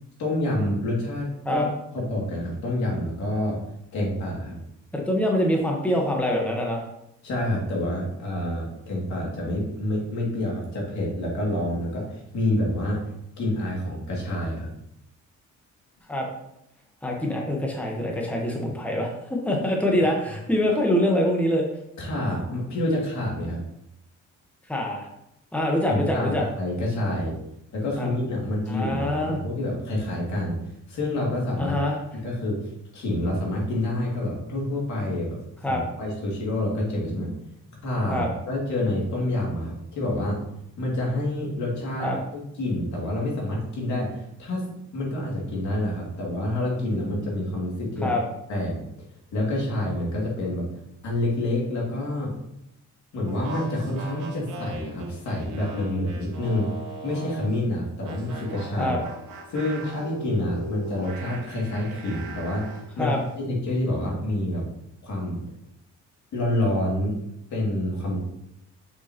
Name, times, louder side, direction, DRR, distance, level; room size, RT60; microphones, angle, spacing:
voice 1, 0.2-1.7 1.9-3.6 3.9-4.6 7.2-13.0 13.4-14.7 22.0-23.6 25.9-27.3 27.7-31.8 32.1-37.3 37.6-40.4 40.8-44.6 44.9-48.1 48.5-48.8 49.3-50.7 51.0-52.3 53.1-56.7 57.0-59.0 59.5-64.7 65.0-65.4 66.3-67.2 67.5-68.2, left 1 dB, 70° left, -3 dB, 2.5 m, -28 dB
voice 2, 4.9-6.8 16.1-16.3 17.0-21.6 24.7-25.1 25.5-26.5 28.0-28.1 28.7-29.4 31.6-32.0 35.6-35.8 38.1-38.3 42.0-42.2 48.0-48.2 58.8-59.0 63.0-63.2, left 1 dB, 5° left, 0 dB, 1.2 m, -24 dB
sound 1, 53.3-57.6 58.0-62.9, right 1 dB, 75° right, 1.3 m, -39 dB
6.4 x 5.8 x 3.0 m, 0.80 s
cardioid pair, 90°, 30 cm